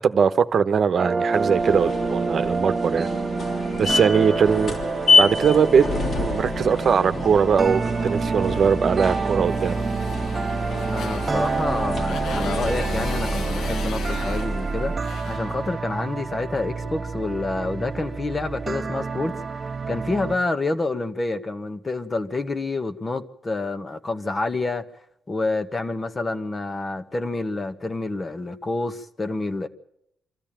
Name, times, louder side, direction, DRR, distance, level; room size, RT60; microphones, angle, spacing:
voice 1, 0.0-3.1 3.8-4.7 5.2-5.9 6.2-9.8, right 6 dB, 55° right, 1.0 m, -20 dB
sound 1, 1.0-20.4, right 4 dB, 35° right, 1.7 m, -28 dB
sound 2, 1.3-14.8, left 3 dB, 55° left, 3.4 m, -28 dB
Motorcycle, 9.5-16.2, left 7 dB, 75° left, 1.1 m, -39 dB
voice 2, 10.8-14.9 15.2-24.8 25.3-29.7, left 2 dB, 30° left, 1.5 m, -28 dB
25.5 x 13.5 x 9.0 m
cardioid pair, 75°, 0 cm